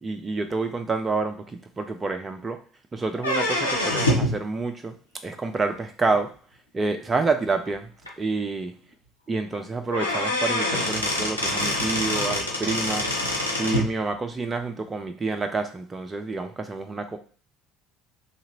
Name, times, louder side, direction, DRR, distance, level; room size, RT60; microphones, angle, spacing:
voice 1, 0.0-2.6 2.9-4.9 5.2-6.3 6.7-7.9 8.2-8.8 9.3-13.1 13.6-17.2, right 3 dB, 25° right, 6 dB, 0.5 m, -28 dB
sound 1, 3.2-4.4 6.1-6.2 7.1-7.2 7.7-7.8 8.1-8.2 9.5-9.6 9.9-13.9, left 1 dB, 85° left, 0.7 m, -25 dB
2.7 x 2.5 x 2.9 m, 0.42 s
figure-of-eight pair, 60°, 0 cm